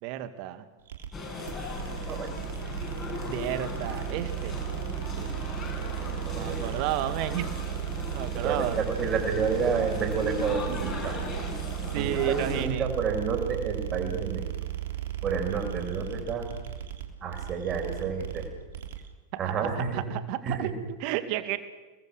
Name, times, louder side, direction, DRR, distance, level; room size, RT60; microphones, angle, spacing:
voice 1, 0.0-0.6 3.2-4.6 5.2-5.3 6.3-7.5 8.1-8.8 11.9-12.9 19.5-21.6, right 13 dB, 45° right, 11 dB, 2.0 m, -32 dB
sound 1, 0.9-19.1, right 12 dB, 60° right, 3.3 m, -35 dB
sound 2, 1.1-12.7, left 3 dB, 25° left, 7.0 m, -38 dB
voice 2, 5.8-6.8 8.4-11.2 11.9-14.5 15.2-16.5 17.2-18.4 19.4-20.0 20.4-20.7, right 5 dB, 30° right, 3 dB, 6.8 m, -30 dB
29.5 x 21.5 x 6.6 m, 1.2 s
figure-of-eight pair, 90°, 0 cm